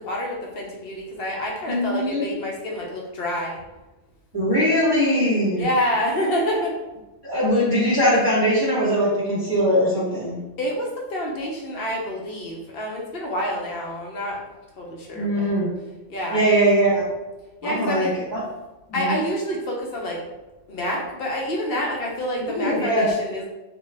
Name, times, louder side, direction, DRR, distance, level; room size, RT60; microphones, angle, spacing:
voice 1, 0.0-3.6 5.6-6.7 10.6-14.4 14.8-15.5 16.1-16.5 17.6-18.2 18.9-20.2 20.7-23.5, equal, 55° left, -1 dB, 0.9 m, -27 dB
voice 2, 1.7-2.2 4.3-5.7 7.2-10.4 15.1-15.7 16.3-17.0 17.6-18.4 18.9-19.1 22.6-23.1, equal, 20° right, -8 dB, 0.7 m, -21 dB
3.7 x 2.5 x 3.2 m, 1.1 s
omnidirectional pair, 1.3 m